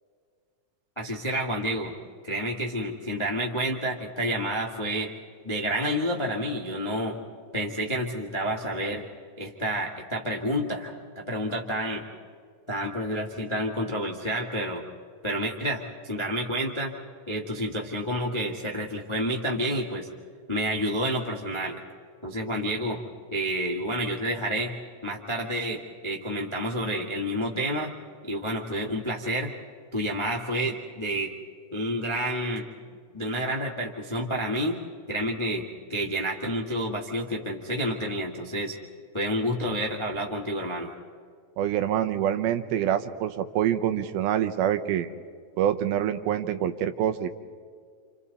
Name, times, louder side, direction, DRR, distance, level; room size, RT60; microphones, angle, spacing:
voice 1, 0.9-1.9 2.2-5.1 5.4-7.2 7.5-9.0 9.4-12.0 12.7-14.8 15.2-16.9 17.3-20.1 20.5-21.8 22.2-23.0 23.3-24.7 25.0-27.9 28.2-29.5 29.9-31.3 31.7-32.7 33.1-34.8 35.1-38.8 39.1-40.9, equal, 35° left, -1 dB, 0.4 m, -29 dB
voice 2, 41.6-45.1 45.6-47.3, right 10 dB, 85° right, 9 dB, 2.8 m, -26 dB
29.5 x 27.5 x 4.2 m, 2.1 s
omnidirectional pair, 4.3 m